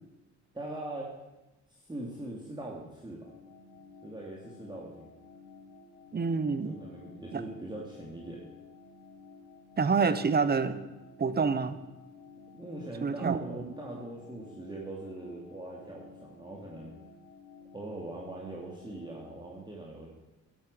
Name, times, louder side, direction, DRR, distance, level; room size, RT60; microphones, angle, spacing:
voice 1, 0.5-1.1 1.7-3.3 4.0-5.1 6.6-8.4 12.5-16.9 17.7-20.1, right 2 dB, 15° right, -3 dB, 2.8 m, -41 dB
sound 1, 3.2-19.5, left 4 dB, 60° left, 5.7 m, -53 dB
voice 2, 6.1-6.7 7.3-7.4 9.8-10.8 11.2-11.8 13.0-13.7, right 5 dB, 30° right, 13 dB, 1.2 m, -27 dB
13.0 x 12.0 x 6.9 m, 1.0 s
cardioid pair, 90°, 30 cm